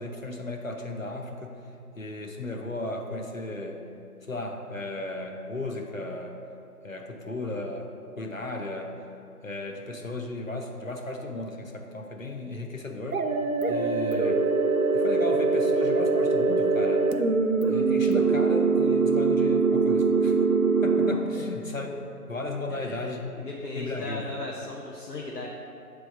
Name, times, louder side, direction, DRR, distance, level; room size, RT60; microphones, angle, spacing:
voice 1, 0.0-1.6 2.0-3.9 4.2-6.4 6.8-9.0 9.4-13.3 13.7-14.4 14.9-17.1 17.7-20.4 20.8-22.0 22.3-23.5 23.7-24.4, left 2 dB, 60° left, 2 dB, 0.7 m, -35 dB
sound 1, 13.1-21.1, right 4 dB, 65° right, 0.5 m, -23 dB
voice 2, 22.7-25.5, left 2 dB, 85° left, -2 dB, 0.9 m, -37 dB
7.8 x 3.4 x 5.2 m, 2.6 s
figure-of-eight pair, 175°, 47 cm